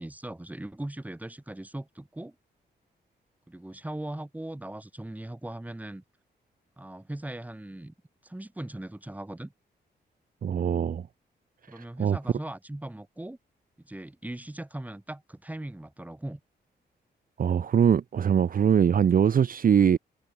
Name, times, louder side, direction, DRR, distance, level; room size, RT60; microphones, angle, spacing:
voice 1, 0.0-2.3 3.5-6.0 6.8-7.9 8.2-9.5 11.7-13.4 13.8-16.4, right 1 dB, 10° right, 6.2 m, -39 dB
voice 2, 10.4-11.1 11.7-12.2 17.4-20.0, right 8 dB, 50° right, 1.1 m, -22 dB
wide cardioid pair, 150°, 18 cm